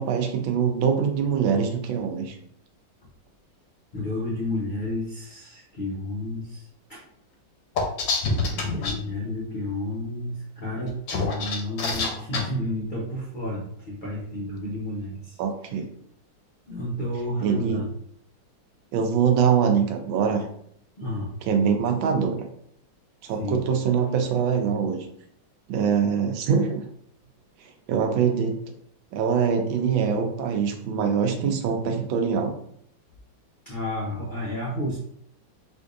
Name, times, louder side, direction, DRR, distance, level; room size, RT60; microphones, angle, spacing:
voice 1, 0.0-2.4 15.4-15.9 17.4-17.8 18.9-20.4 21.4-22.5 23.3-25.0 25.7-26.8 27.9-28.5 29.1-32.5, right 6 dB, 85° right, 4 dB, 1.4 m, -23 dB
voice 2, 3.9-6.6 6.9-7.0 8.4-15.3 16.7-17.9 21.0-21.3 23.4-23.6 33.7-35.0, left 1 dB, 85° left, -5 dB, 0.4 m, -31 dB
sound 1, 7.8-8.9 10.9-12.4, left 3 dB, 65° left, 1.0 m, -26 dB
4.4 x 2.6 x 2.5 m, 0.68 s
omnidirectional pair, 2.1 m